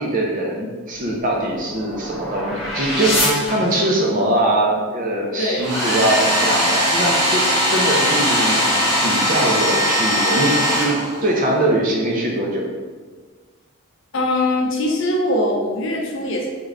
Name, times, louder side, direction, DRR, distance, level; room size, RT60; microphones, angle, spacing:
voice 1, 0.0-12.7, right 1 dB, 35° right, -1 dB, 0.5 m, -22 dB
sound 1, 0.9-4.3, equal, ahead, 1.0 m, -26 dB
Domestic sounds home sounds, 5.6-11.4, equal, 85° right, 1.3 m, -19 dB
voice 2, 14.1-16.5, left 1 dB, 55° left, 0 dB, 0.5 m, -21 dB
3.6 x 2.5 x 3.2 m, 1.4 s
head